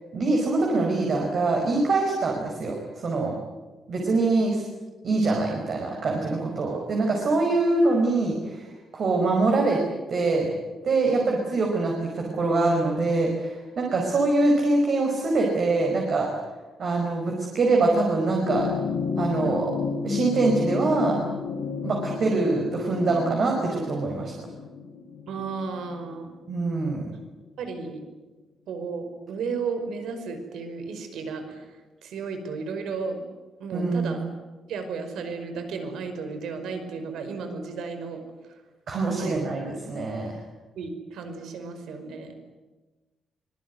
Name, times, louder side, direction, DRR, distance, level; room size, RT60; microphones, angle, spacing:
voice 1, 0.1-2.7 3.0-3.3 3.9-4.6 5.0-8.6 8.9-9.8 10.1-10.6 10.8-16.3 16.8-18.7 19.2-19.7 20.0-21.2 21.8-24.3 26.5-27.1 33.7-34.1 38.9-40.3, right 3 dB, 45° right, 0 dB, 5.1 m, -24 dB
sound 1, 18.1-26.8 28.0-28.1, left 6 dB, 65° left, 4.5 m, -32 dB
voice 2, 25.3-26.4 27.1-27.2 27.6-28.0 28.7-31.7 32.0-33.2 33.6-34.3 34.7-38.2 39.2-39.4 40.8-42.4, right 4 dB, 80° right, 7 dB, 5.3 m, -34 dB
25.5 x 22.5 x 9.6 m, 1.2 s
wide cardioid pair, 175°, 0 cm